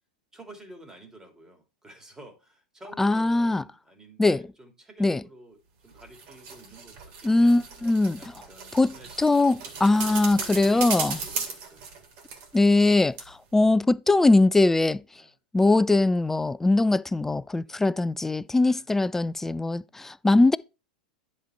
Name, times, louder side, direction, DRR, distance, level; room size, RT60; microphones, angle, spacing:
voice 1, 0.3-5.6 5.8-7.5 8.2-9.7 9.9-11.8 12.6-12.8 15.1-15.4 17.6-17.9 18.6-18.9 19.6-19.8, right 1 dB, 15° right, 2.6 m, -50 dB
voice 2, 3.0-3.6 4.2-4.4 5.0-5.2 7.2-8.2 8.7-11.2 12.5-15.0 15.5-20.6, left 2 dB, 10° left, 0.3 m, -21 dB
sound 1, 5.9-12.9 13.2-13.3, right 5 dB, 50° right, 2.4 m, -36 dB
10.0 x 4.3 x 4.4 m
hypercardioid pair, 90°, 4 cm